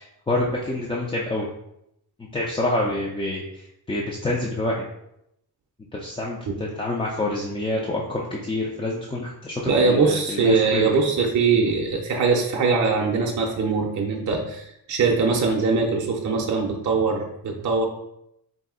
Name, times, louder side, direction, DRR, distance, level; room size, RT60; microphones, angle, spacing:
voice 1, 0.0-1.5 2.2-4.9 5.9-10.9, left 2 dB, 15° left, -4 dB, 0.3 m, -27 dB
voice 2, 9.7-17.8, right 4 dB, 45° right, 0 dB, 0.5 m, -22 dB
4.1 x 2.6 x 3.6 m, 0.79 s
wide cardioid pair, 165°, 42 cm